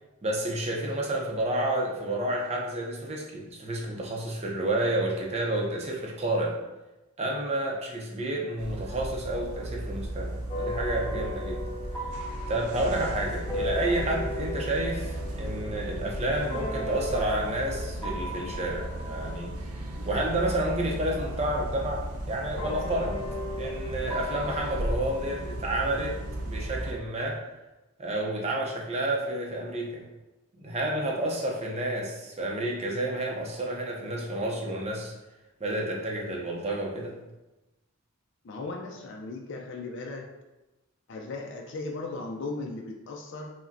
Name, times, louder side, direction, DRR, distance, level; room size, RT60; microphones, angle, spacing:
voice 1, 0.2-6.6 7.2-11.6 12.5-19.5 20.0-23.2 23.6-26.1 26.4-27.4 28.0-30.0 30.6-35.1 35.6-37.2, right 1 dB, 30° right, -1 dB, 0.6 m, -30 dB
sound 1, 8.6-26.9, right 1 dB, 90° right, 0.6 m, -35 dB
sound 2, 10.5-21.3 22.6-27.0, equal, 15° left, 0.6 m, -38 dB
voice 2, 38.4-40.2 41.1-43.5, left 3 dB, 55° left, 0 dB, 0.4 m, -37 dB
4.9 x 2.1 x 2.6 m, 1.0 s
head